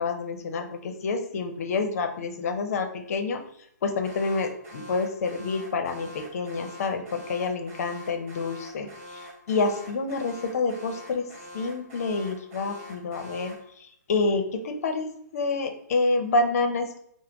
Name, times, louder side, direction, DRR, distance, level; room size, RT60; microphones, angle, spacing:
voice 1, 0.0-3.4 3.8-9.2 9.5-11.2 11.5-17.0, left 3 dB, 55° left, 6 dB, 0.7 m, -28 dB
Alarm, 4.0-13.7, left 1 dB, 45° right, 1.4 m, -45 dB
5.6 x 2.1 x 3.5 m, 0.71 s
hypercardioid pair, 145°, 10 cm